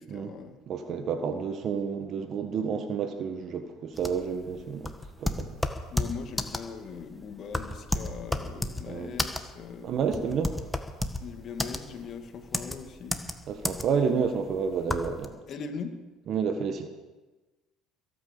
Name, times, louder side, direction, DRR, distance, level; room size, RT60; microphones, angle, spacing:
voice 1, 0.0-0.6 5.9-9.9 11.2-13.2 15.5-16.0, left 6 dB, 50° left, 6 dB, 2.3 m, -40 dB
voice 2, 0.7-5.5 8.9-9.1 9.8-10.5 13.5-15.3 16.3-16.9, right 6 dB, 55° right, 7 dB, 1.5 m, -30 dB
sound 1, 4.0-15.3, left 1 dB, 10° left, 1.6 m, -32 dB
21.5 x 9.3 x 7.0 m, 1.2 s
supercardioid pair, 75°, 0 cm